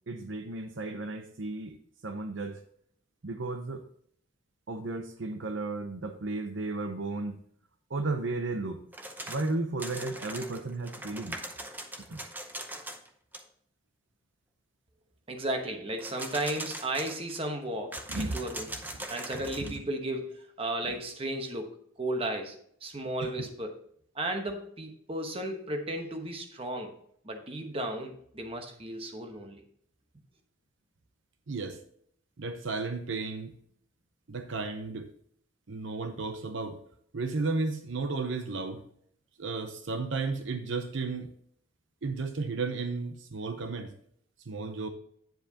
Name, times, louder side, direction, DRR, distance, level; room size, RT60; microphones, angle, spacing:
voice 1, 0.1-1.7 2.0-2.6 3.2-3.8 4.7-7.3 7.9-8.8 9.3-11.4 12.1-12.2 18.1-18.4 19.6-19.8 23.2-23.5 31.5-31.8 32.4-33.5 34.3-35.1 35.7-36.8 37.1-38.8 39.4-41.3 42.0-43.9 44.5-44.9, right 3 dB, 65° right, 7 dB, 0.7 m, -33 dB
sound 1, 8.9-9.5 9.8-13.1 13.3-13.4 16.0-17.4 17.9-19.8, right 1 dB, 10° right, 0.7 m, -41 dB
voice 2, 15.3-18.7 19.1-23.8 24.1-26.9 27.2-29.6, right 1 dB, 25° right, 4 dB, 1.1 m, -34 dB
9.1 x 7.7 x 2.8 m, 0.66 s
head